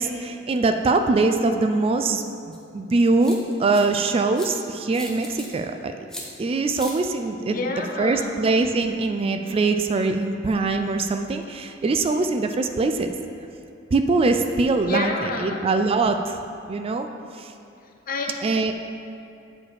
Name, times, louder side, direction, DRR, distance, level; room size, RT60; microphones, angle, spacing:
voice 1, 0.0-5.9 6.4-7.6 8.0-13.1 13.9-16.4 16.7-17.1 17.4-17.5 18.4-18.7, right 3 dB, 30° right, 6 dB, 0.3 m, -22 dB
sound 1, 2.5-2.6 3.2-3.8 4.3-4.5 4.9-5.5 6.1-6.3 6.7-6.9, left 1 dB, 5° left, 0.9 m, -38 dB
voice 2, 7.4-8.4 14.8-15.6 18.1-18.4, left 3 dB, 45° left, 3 dB, 0.7 m, -29 dB
8.5 x 4.9 x 4.8 m, 2.6 s
head